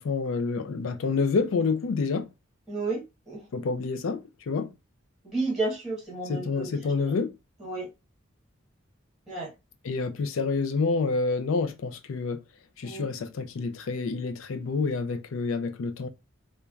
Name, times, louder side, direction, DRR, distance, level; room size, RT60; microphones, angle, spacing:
voice 1, 0.0-2.3 3.5-4.7 6.3-7.3 9.8-12.4 12.8-16.1, left 4 dB, 75° left, 0.4 m, -28 dB
voice 2, 2.7-3.0 3.3-3.5 5.2-6.7 7.6-7.9 9.3-9.5 12.8-13.1, right 3 dB, ahead, 1.2 m, -31 dB
3.2 x 2.2 x 2.4 m
head